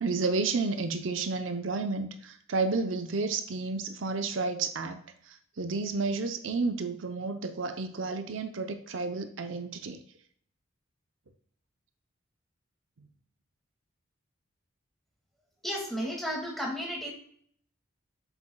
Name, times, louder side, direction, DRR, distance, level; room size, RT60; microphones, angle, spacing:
voice 1, 0.0-5.0 5.3-10.0, right 3 dB, 75° right, 7 dB, 0.7 m, -31 dB
voice 2, 15.6-17.1, equal, ahead, -3 dB, 2.0 m, -33 dB
8.2 x 7.3 x 2.3 m, 0.62 s
head